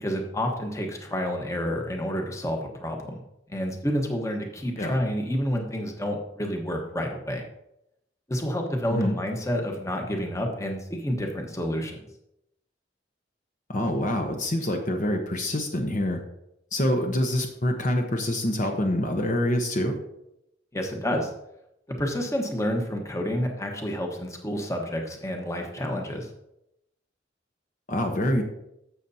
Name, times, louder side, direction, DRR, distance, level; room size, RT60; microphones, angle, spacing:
voice 1, 0.0-3.2 3.5-7.5 8.3-12.0 20.7-21.3 21.9-26.3, equal, 15° left, 2 dB, 1.2 m, -29 dB
voice 2, 13.7-16.2 16.7-20.0 27.9-28.4, left 1 dB, 45° left, 3 dB, 1.0 m, -26 dB
12.5 x 7.7 x 2.8 m, 0.83 s
head